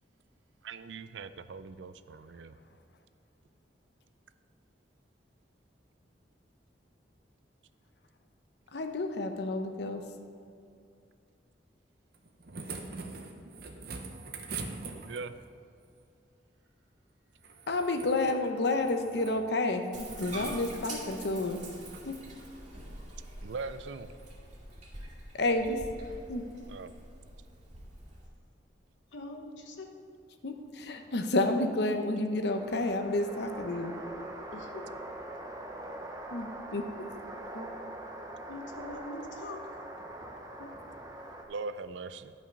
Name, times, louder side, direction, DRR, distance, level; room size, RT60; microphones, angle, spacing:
voice 1, 0.6-2.5 15.0-15.4 23.4-24.1 26.7-26.9 41.5-42.3, right 4 dB, 75° right, 13 dB, 0.4 m, -40 dB
voice 2, 8.7-10.1 17.7-21.6 22.1-22.2 25.3-25.8 26.3-26.4 30.4-34.0 36.3-37.1 40.6-40.7, left 2 dB, 65° left, 6 dB, 0.8 m, -30 dB
sound 1, 12.1-15.5 17.4-18.4 18.8-19.4 19.9-20.3 21.0-21.2 21.8-22.0 23.4-23.5, right 4 dB, 60° right, 0.9 m, -43 dB
Bathtub (filling or washing), 19.9-28.3, right 1 dB, 40° right, 2.1 m, -45 dB
voice 3, 29.1-29.9 34.5-34.9 37.5-37.7 38.5-39.6, left 2 dB, 90° left, 3 dB, 1.1 m, -43 dB
sound 2, 32.5-41.4, right 1 dB, 20° right, 0.8 m, -43 dB
11.0 x 5.7 x 5.3 m, 2.5 s
head